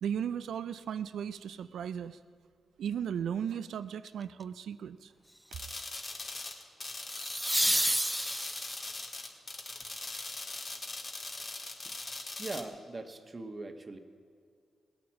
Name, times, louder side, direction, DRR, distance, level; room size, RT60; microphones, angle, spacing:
voice 1, 0.0-2.2 2.8-5.1, right 8 dB, 75° right, 13 dB, 0.4 m, -36 dB
sound 1, 4.1-4.4 7.1-9.0 11.9-12.0, right 1 dB, 5° right, 0.4 m, -30 dB
sound 2, 5.5-12.6, left 3 dB, 45° left, 2.0 m, -41 dB
voice 2, 12.4-14.0, right 2 dB, 35° right, 6 dB, 1.3 m, -41 dB
18.0 x 8.7 x 7.4 m, 2.3 s
supercardioid pair, 45°, 0 cm